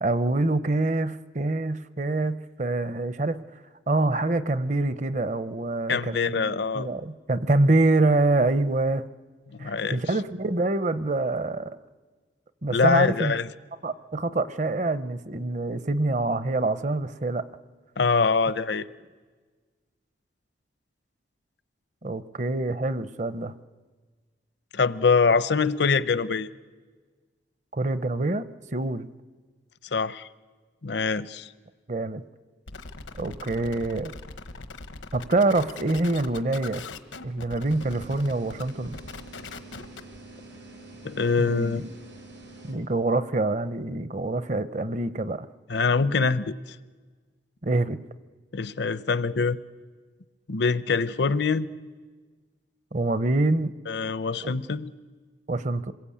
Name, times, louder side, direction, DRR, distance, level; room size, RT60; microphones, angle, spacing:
voice 1, 0.0-3.4 3.9-9.0 9.6-11.8 12.6-13.3 13.8-17.4 22.0-23.5 27.7-28.4 28.7-29.1 31.9-32.2 33.2-34.1 35.1-36.8 37.2-38.9 41.4-41.8 42.6-45.5 47.6-48.0 52.9-53.7 54.4-54.5 55.5-55.9, right 2 dB, 40° right, 13 dB, 0.7 m, -25 dB
voice 2, 5.9-6.9 9.6-10.0 12.7-13.5 18.0-18.9 24.7-26.5 29.9-30.3 30.8-31.5 41.0-41.9 45.7-46.6 48.5-49.6 50.5-51.7 53.9-54.9, left 4 dB, 65° left, 15 dB, 0.7 m, -24 dB
sound 1, 32.7-40.2, left 3 dB, 90° left, 1.2 m, -41 dB
sound 2, 37.6-42.7, right 2 dB, 80° right, 7.7 m, -46 dB
27.0 x 21.5 x 8.6 m, 1.4 s
head